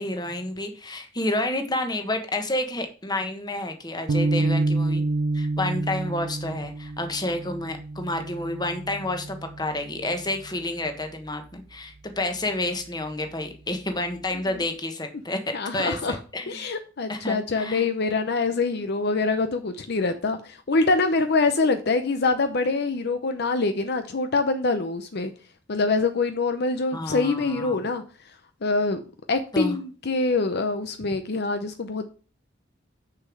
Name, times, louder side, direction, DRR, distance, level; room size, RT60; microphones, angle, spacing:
voice 1, 0.0-5.0 5.3-16.5 17.1-17.9 26.9-27.9 29.5-29.8, left 1 dB, 20° left, 6 dB, 1.3 m, -30 dB
sound 1, 4.1-10.5, right 2 dB, 90° right, 0.6 m, -28 dB
voice 2, 15.5-16.2 16.5-25.3 25.7-28.0 28.6-29.0 29.3-32.1, left 3 dB, 60° left, 8 dB, 0.7 m, -25 dB
6.6 x 5.6 x 6.1 m, 0.38 s
head